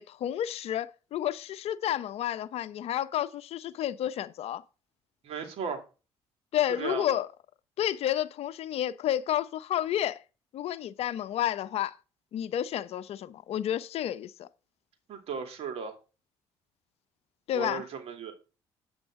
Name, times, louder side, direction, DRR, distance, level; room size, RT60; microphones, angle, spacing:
voice 1, 0.0-4.6 6.5-7.3 7.8-10.2 10.5-12.0 12.3-14.5 17.5-17.8, left 11 dB, 65° left, 0.7 m, -30 dB
voice 2, 5.2-5.8 6.7-7.0 15.1-16.0 17.5-18.3, right 5 dB, 65° right, 2.7 m, -35 dB
8.7 x 7.8 x 3.6 m
supercardioid pair, 65°, 11 cm